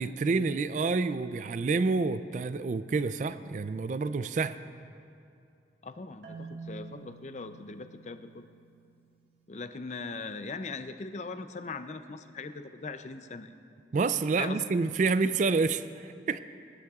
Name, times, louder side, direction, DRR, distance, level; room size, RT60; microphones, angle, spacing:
voice 1, 0.0-4.6 13.9-16.4, right 4 dB, 40° right, 13 dB, 0.3 m, -28 dB
voice 2, 5.8-8.5 9.5-13.5 14.4-14.6, left 3 dB, 40° left, 9 dB, 0.4 m, -40 dB
Marimba xylophone, 6.2-9.2, right 4 dB, 65° right, 1.8 m, -48 dB
20.0 x 12.5 x 2.4 m, 2.5 s
head